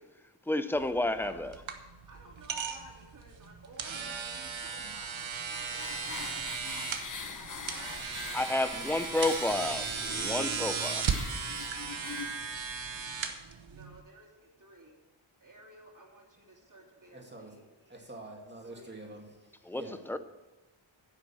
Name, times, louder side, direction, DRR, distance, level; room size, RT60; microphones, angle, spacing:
voice 1, 0.5-1.5 8.3-11.1 19.7-19.8 20.1-20.2, left 2 dB, 5° left, 0.6 m, -30 dB
sound 1, 0.7-14.0, right 6 dB, 80° right, 1.2 m, -36 dB
voice 2, 2.1-6.4 6.9-8.3 13.7-15.0 15.4-18.1 18.6-19.1, right 2 dB, 40° right, 3.1 m, -55 dB
sound 2, 4.9-12.4, left 5 dB, 40° left, 1.1 m, -43 dB
voice 3, 17.1-17.6 17.9-20.1, right 2 dB, 25° right, 2.3 m, -47 dB
10.5 x 7.8 x 7.2 m
wide cardioid pair, 100°, 46 cm